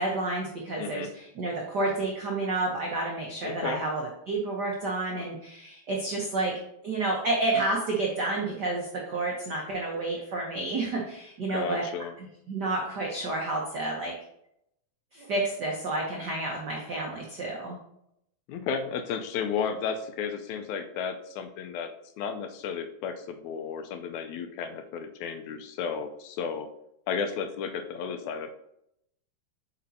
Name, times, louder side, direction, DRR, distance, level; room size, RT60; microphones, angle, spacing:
voice 1, 0.0-6.5 6.8-11.8 12.2-14.1 15.1-17.8, right 2 dB, 85° right, -2 dB, 0.9 m, -30 dB
voice 2, 0.8-1.1 3.4-3.8 11.5-12.1 18.5-21.9 22.2-26.7 27.1-28.5, left 6 dB, 85° left, 6 dB, 2.0 m, -33 dB
8.3 x 5.2 x 2.7 m, 0.77 s
omnidirectional pair, 3.4 m